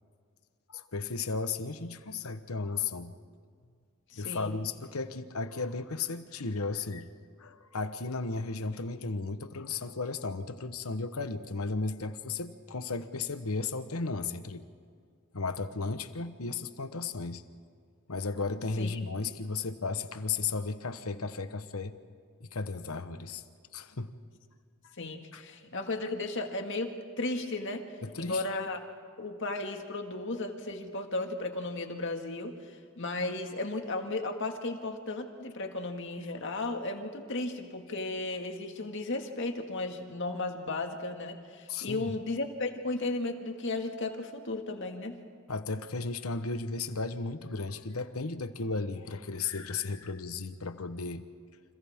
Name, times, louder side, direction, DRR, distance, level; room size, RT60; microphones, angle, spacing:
voice 1, 0.7-3.1 4.1-7.1 7.4-14.6 15.3-17.4 18.1-21.9 22.4-23.4 23.7-24.1 24.8-24.9 25.3-25.4 28.0-28.4 41.7-42.2 45.5-51.2, left 4 dB, 85° left, 10 dB, 1.1 m, -35 dB
voice 2, 4.1-4.5 18.8-19.0 25.0-27.9 28.2-28.8 29.2-32.6 33.0-45.2, left 2 dB, 60° left, 4 dB, 2.0 m, -35 dB
30.0 x 26.5 x 3.7 m, 2.2 s
head